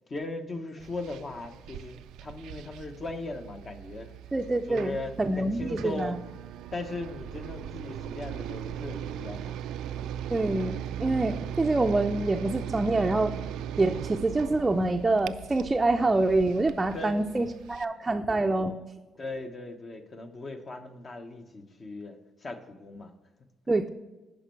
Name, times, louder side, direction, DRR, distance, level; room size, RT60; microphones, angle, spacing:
voice 1, 0.1-4.1 4.7-6.2 6.7-9.6 9.9-10.1 16.9-17.3 18.0-18.1 19.2-23.1, left 2 dB, 40° left, 6 dB, 1.0 m, -38 dB
sound 1, 0.8-17.8, right 10 dB, 90° right, 0.3 m, -39 dB
voice 2, 4.3-6.1 10.3-13.3 13.8-18.7 23.7-23.9, right 2 dB, 20° right, 3 dB, 0.4 m, -26 dB
10.0 x 5.3 x 4.5 m, 1.2 s
cardioid pair, 90°, 0 cm